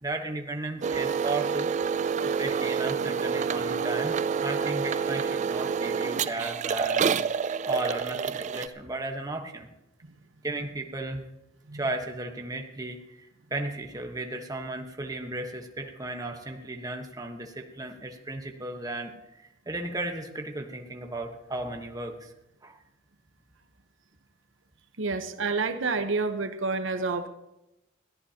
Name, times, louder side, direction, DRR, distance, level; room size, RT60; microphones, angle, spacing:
voice 1, 0.0-1.7 2.4-7.1 7.6-9.7 10.4-11.2 11.7-22.3 22.6-22.8, right 2 dB, 20° right, 4 dB, 1.2 m, -35 dB
sound 1, 0.8-8.7, right 6 dB, 40° right, 0.4 m, -28 dB
voice 2, 25.0-27.3, right 4 dB, 75° right, 8 dB, 0.9 m, -28 dB
21.5 x 14.0 x 2.9 m, 0.92 s
head